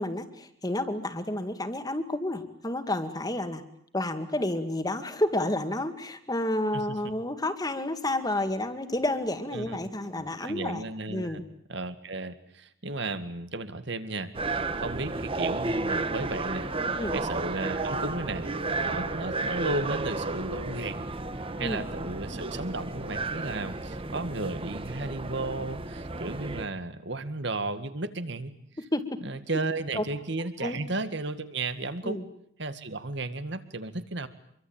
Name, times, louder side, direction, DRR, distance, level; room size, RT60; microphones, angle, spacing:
voice 1, 0.0-3.6 3.9-11.4 17.0-17.2 21.6-21.8 28.9-29.0 29.9-30.0 30.4-30.8 32.0-32.2, left 1 dB, 20° left, 9 dB, 2.1 m, -30 dB
voice 2, 9.5-11.4 11.7-16.7 17.1-18.5 18.8-21.0 21.6-28.5 29.2-32.2 32.6-34.3, right 2 dB, 60° right, 11 dB, 2.0 m, -34 dB
sound 1, 14.3-26.6, right 3 dB, 30° right, 1.3 m, -33 dB
Wind instrument woodwind instrument, 15.9-23.6, right 1 dB, 90° right, 5.9 m, -44 dB
26.0 x 23.5 x 8.9 m, 0.69 s
head